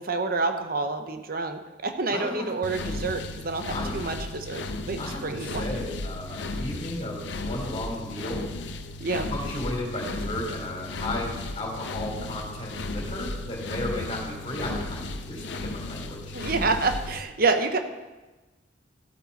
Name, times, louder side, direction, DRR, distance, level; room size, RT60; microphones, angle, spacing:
voice 1, 0.0-5.6 9.0-9.3 16.3-17.8, right 3 dB, 55° right, 7 dB, 0.9 m, -28 dB
voice 2, 2.1-2.5 3.7-4.1 5.0-8.5 9.3-16.2, left 1 dB, 30° left, -2 dB, 3.7 m, -34 dB
sound 1, 2.6-17.2, left 2 dB, 75° left, 0.7 m, -35 dB
14.0 x 8.5 x 4.1 m, 1.2 s
head